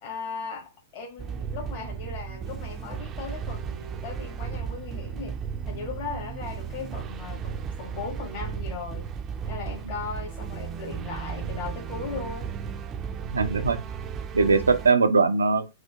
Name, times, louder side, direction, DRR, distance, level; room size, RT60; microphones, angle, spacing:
voice 1, 0.0-5.4 5.7-9.1 9.4-12.5, left 5 dB, 50° left, 1.5 m, -37 dB
Military tank music, 1.2-14.9, right 7 dB, 25° right, 0.4 m, -35 dB
voice 2, 13.3-13.8 14.3-15.7, right 4 dB, 85° right, 0.5 m, -21 dB
4.8 x 2.1 x 4.6 m
hypercardioid pair, 110°, 0 cm